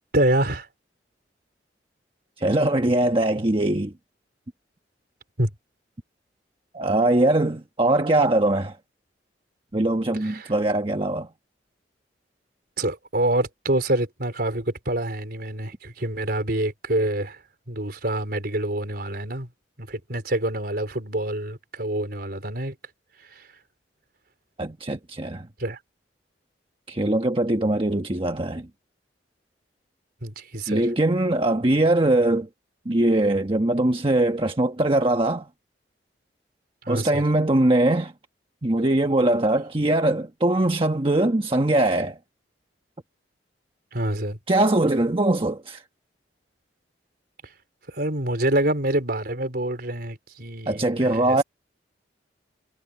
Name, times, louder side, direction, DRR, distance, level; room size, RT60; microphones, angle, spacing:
voice 1, 0.1-0.7 5.4-5.5 10.2-10.5 12.8-17.4 17.7-19.5 19.8-22.7 23.3-23.5 25.6-25.8 30.2-30.9 36.8-37.2 43.9-44.4 47.9-51.4, right 1 dB, 60° right, 4.3 m, -26 dB
voice 2, 2.4-3.9 6.7-8.8 9.7-11.3 24.6-25.5 26.9-28.7 30.7-32.5 32.8-35.5 36.9-38.1 38.6-42.2 44.5-45.8 50.7-51.4, right 1 dB, 30° right, 1.3 m, -21 dB
head